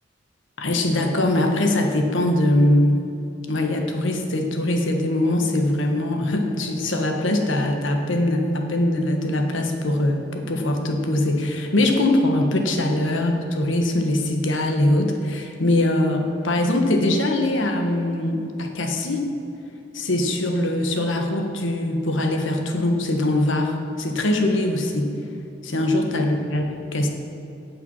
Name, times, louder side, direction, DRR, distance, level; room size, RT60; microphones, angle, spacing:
voice 1, 0.6-3.1 3.5-19.3 19.9-25.1 25.6-26.6 26.9-27.1, left 1 dB, 80° left, 3 dB, 1.4 m, -22 dB
17.0 x 6.0 x 5.6 m, 2.8 s
head